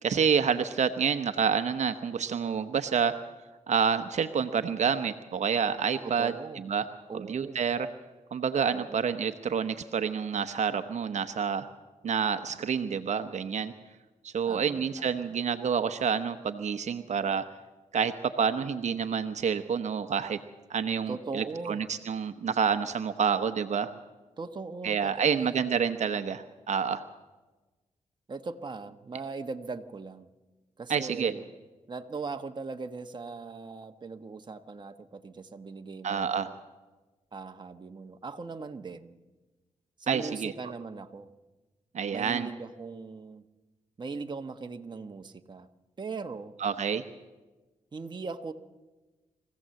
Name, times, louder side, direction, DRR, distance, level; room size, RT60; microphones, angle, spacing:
voice 1, 0.0-3.1 3.7-6.3 6.6-6.9 7.1-7.9 8.3-11.7 12.0-13.7 14.2-17.4 17.9-20.4 20.7-23.9 24.8-27.0 30.9-31.3 36.0-36.5 40.1-40.5 41.9-42.5 46.6-47.0, right 6 dB, 65° right, 9 dB, 0.9 m, -28 dB
voice 2, 6.0-6.7 7.1-7.6 8.7-9.1 14.5-15.3 21.1-21.8 24.4-25.6 28.3-30.3 30.8-31.5 31.9-36.5 37.3-39.2 40.0-41.3 42.1-43.4 44.0-45.7 46.0-46.6 47.9-48.5, right 4 dB, 35° right, 6 dB, 1.1 m, -39 dB
23.5 x 15.5 x 7.7 m, 1.2 s
cardioid pair, 85°, 13 cm